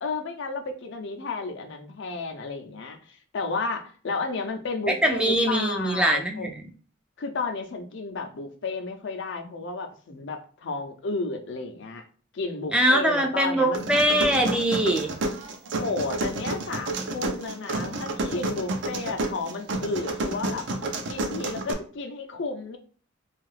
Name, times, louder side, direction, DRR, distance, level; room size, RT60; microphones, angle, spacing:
voice 1, 0.0-6.5 7.2-12.0 12.3-14.0 15.8-20.7 21.1-22.8, left 3 dB, 65° left, 5 dB, 0.5 m, -32 dB
voice 2, 5.0-6.6 12.7-15.1, right 1 dB, 5° right, 2 dB, 0.3 m, -22 dB
sound 1, 13.7-21.7, right 2 dB, 65° right, 0.5 m, -30 dB
2.6 x 2.4 x 3.2 m, 0.42 s
head